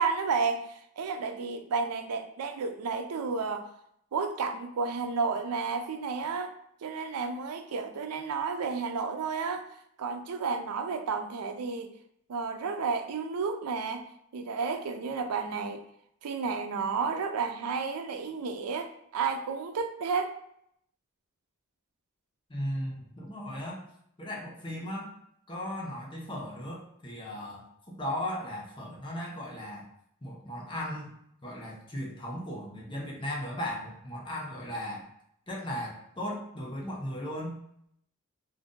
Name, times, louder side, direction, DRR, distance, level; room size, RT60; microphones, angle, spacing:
voice 1, 0.0-3.7 4.1-6.5 6.8-9.6 10.0-11.9 12.3-14.0 14.3-15.8 16.2-20.3, right 5 dB, 90° right, 7 dB, 0.4 m, -31 dB
voice 2, 22.5-23.8 24.2-25.1 25.5-29.8 30.2-31.1 31.4-35.1 35.5-37.6, left 1 dB, 20° left, -3 dB, 0.8 m, -37 dB
2.6 x 2.5 x 3.6 m, 0.73 s
head